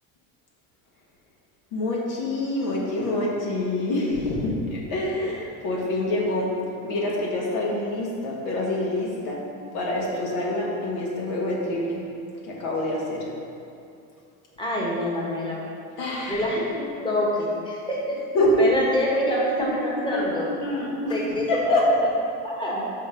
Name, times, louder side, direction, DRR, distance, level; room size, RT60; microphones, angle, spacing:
voice 1, 1.7-6.5 6.8-9.4 9.7-12.0 12.5-13.2 16.0-16.4 18.3-18.5 20.1-20.2 20.6-21.2 21.5-21.9, left 2 dB, 75° left, -4 dB, 1.5 m, -26 dB
voice 2, 14.6-15.6 16.3-20.5 21.1-21.8 22.4-22.8, equal, 15° left, -5 dB, 1.3 m, -26 dB
6.0 x 4.1 x 5.1 m, 2.6 s
cardioid pair, 135°, 37 cm